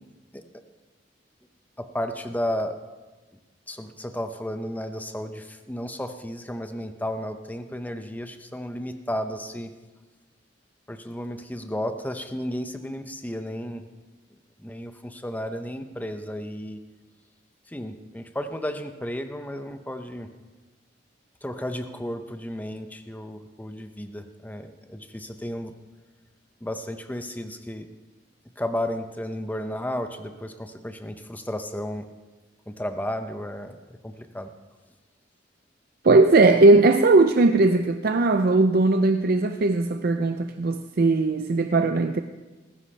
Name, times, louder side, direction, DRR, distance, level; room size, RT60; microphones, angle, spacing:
voice 1, 1.8-2.8 3.7-9.7 10.9-13.8 14.6-16.8 17.7-20.3 21.4-25.7 26.6-27.9 28.6-32.1 32.7-34.5, left 1 dB, 10° left, 0.7 m, -33 dB
voice 2, 36.0-42.2, right 3 dB, 50° right, 0.5 m, -19 dB
19.5 x 15.0 x 3.3 m
head